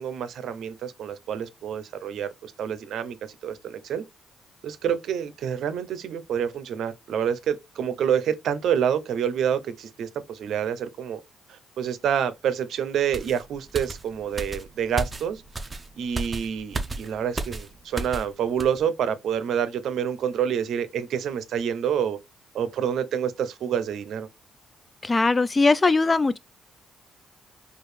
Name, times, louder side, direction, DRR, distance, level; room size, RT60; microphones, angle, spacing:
voice 1, 0.0-3.2 3.4-4.0 4.6-11.2 11.5-15.4 16.0-22.2 22.5-24.3, right 8 dB, 70° right, 0.6 m, -27 dB
sound 1, 13.1-18.3 18.6-18.8, right 2 dB, 25° right, 0.6 m, -34 dB
voice 2, 25.0-26.4, left 3 dB, 25° left, 0.3 m, -20 dB
4.6 x 2.4 x 3.2 m
cardioid pair, 90°, 0 cm